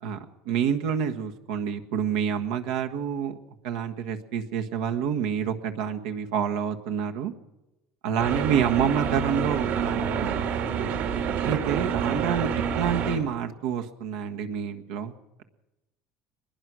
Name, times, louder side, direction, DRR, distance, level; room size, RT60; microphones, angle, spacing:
voice 1, 0.0-3.4 3.6-7.3 8.0-10.5 11.4-15.1, right 8 dB, 85° right, 5 dB, 1.5 m, -28 dB
sound 1, 8.2-13.2, right 7 dB, 70° right, 3.1 m, -28 dB
23.0 x 21.0 x 6.2 m, 1.0 s
supercardioid pair, 115°, 4 cm